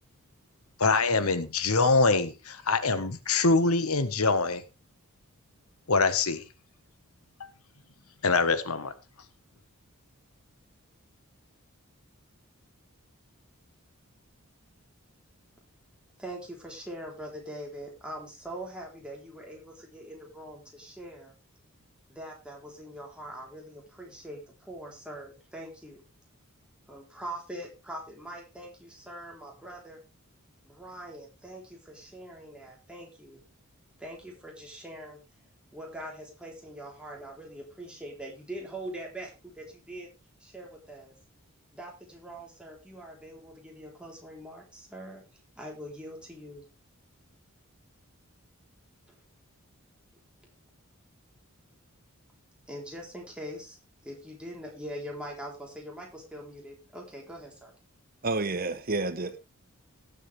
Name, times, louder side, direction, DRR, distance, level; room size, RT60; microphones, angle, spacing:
voice 1, 0.8-4.6 5.9-6.4 7.4-7.5 8.2-8.9, left 3 dB, 80° left, 1.5 m, -24 dB
voice 2, 16.2-21.3 22.1-26.0 26.9-30.0 30.6-33.4 34.0-35.2 35.7-40.1 40.4-41.1 41.7-45.2 45.6-46.6 52.7-53.8 54.0-57.7, right 1 dB, 5° right, 3.9 m, -42 dB
voice 3, 58.2-59.4, right 3 dB, 40° right, 0.9 m, -29 dB
18.5 x 7.8 x 3.5 m
head